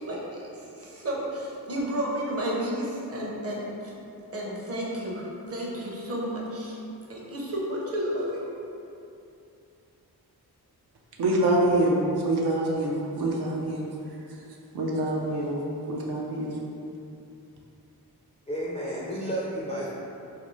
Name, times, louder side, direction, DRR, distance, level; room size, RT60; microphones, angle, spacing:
voice 1, 0.0-4.0 4.3-6.8 7.1-8.5, equal, 40° right, -4 dB, 0.6 m, -32 dB
voice 2, 11.2-13.9 14.7-15.6 15.9-16.6, right 1 dB, 80° right, -2 dB, 0.5 m, -25 dB
voice 3, 18.5-19.9, equal, 20° left, -7 dB, 0.3 m, -31 dB
2.5 x 2.2 x 3.0 m, 2.6 s
wide cardioid pair, 75°, 38 cm